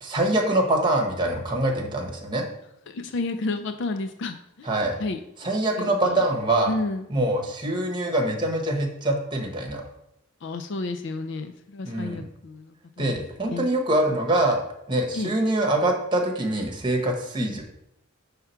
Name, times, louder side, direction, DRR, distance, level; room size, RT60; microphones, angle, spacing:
voice 1, 0.0-2.4 4.7-5.0 5.4-6.7 7.1-9.8 11.9-12.2 13.0-14.6 14.9-17.6, right 1 dB, 25° right, 2 dB, 1.1 m, -24 dB
voice 2, 2.9-6.3 6.7-7.1 10.4-13.7 15.1-15.3 17.4-17.6, left 3 dB, 60° left, 8 dB, 0.4 m, -32 dB
5.7 x 3.6 x 5.6 m, 0.79 s
head